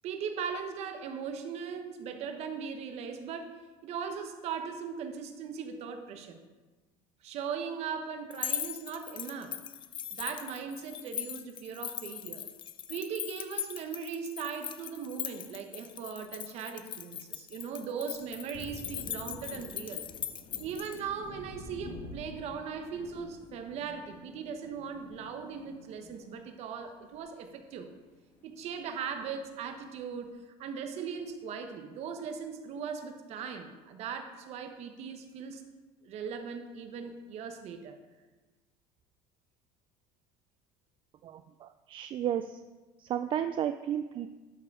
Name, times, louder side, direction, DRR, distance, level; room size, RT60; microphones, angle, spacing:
voice 1, 0.0-6.4 7.2-9.6 10.1-12.4 12.9-20.0 20.6-27.9 28.4-35.6 36.0-38.0, right 6 dB, 60° right, 6 dB, 1.2 m, -39 dB
sound 1, 8.3-21.0, left 10 dB, 40° left, 0.6 m, -40 dB
Thunder, 18.1-27.8 28.2-29.3, left 2 dB, 60° left, 2.5 m, -49 dB
voice 2, 41.2-42.6 43.0-44.3, right 10 dB, 40° right, 9 dB, 0.4 m, -33 dB
12.0 x 4.8 x 4.9 m, 1.2 s
cardioid pair, 120°, 13 cm